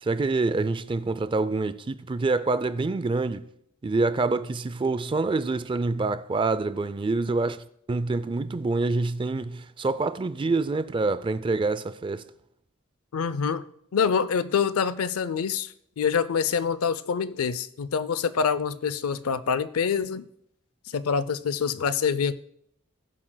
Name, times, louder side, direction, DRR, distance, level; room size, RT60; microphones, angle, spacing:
voice 1, 0.0-3.5 3.8-12.3, right 3 dB, 25° right, 0.3 m, -26 dB
voice 2, 13.1-13.6 13.9-20.2 20.9-22.3, left 6 dB, 85° left, 0.5 m, -26 dB
20.0 x 7.5 x 2.2 m
head